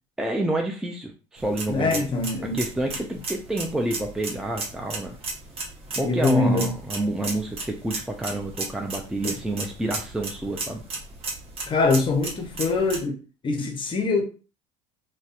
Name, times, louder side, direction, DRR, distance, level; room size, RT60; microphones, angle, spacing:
voice 1, 0.2-2.1 2.5-5.2 5.9-10.8, right 1 dB, 5° right, 0.4 m, -29 dB
sound 1, 1.4-13.0, right 3 dB, 40° right, 0.9 m, -35 dB
voice 2, 1.7-2.6 6.0-6.7 9.2-9.3 11.7-13.2 13.4-14.3, left 3 dB, 35° left, 0.7 m, -23 dB
2.5 x 2.1 x 2.4 m
supercardioid pair, 85°, 14 cm